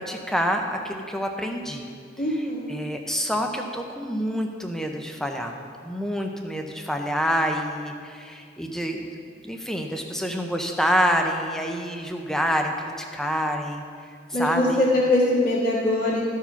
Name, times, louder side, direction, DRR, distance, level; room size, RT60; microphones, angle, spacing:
voice 1, 0.0-1.9 2.3-5.5 5.8-9.0 9.4-13.8 14.3-14.8, equal, ahead, 3 dB, 0.6 m, -27 dB
voice 2, 2.2-2.8 14.3-16.3, left 1 dB, 45° left, -9 dB, 1.8 m, -22 dB
13.5 x 4.8 x 5.7 m, 2.2 s
head